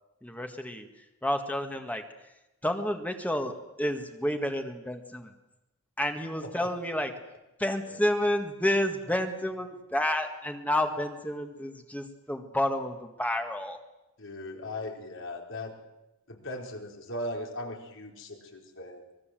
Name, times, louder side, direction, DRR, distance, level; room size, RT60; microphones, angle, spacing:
voice 1, 0.2-0.9 1.2-2.0 2.6-5.3 6.0-7.1 7.6-13.8, left 1 dB, 5° left, 5 dB, 1.8 m, -30 dB
voice 2, 14.2-15.8 16.3-19.0, left 1 dB, 65° left, 2 dB, 4.3 m, -38 dB
25.0 x 21.0 x 7.7 m, 0.95 s
head